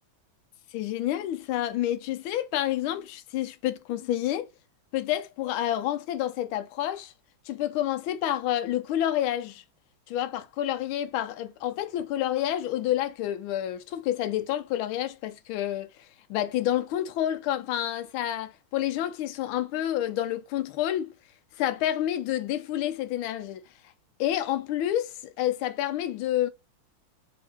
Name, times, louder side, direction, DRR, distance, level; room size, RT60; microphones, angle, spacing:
voice 1, 0.7-4.5 4.9-7.1 7.5-9.6 10.1-15.9 16.3-21.1 21.6-23.6 24.2-26.5, left 12 dB, 80° left, 1.4 m, -29 dB
4.2 x 2.8 x 3.5 m
omnidirectional pair, 2.3 m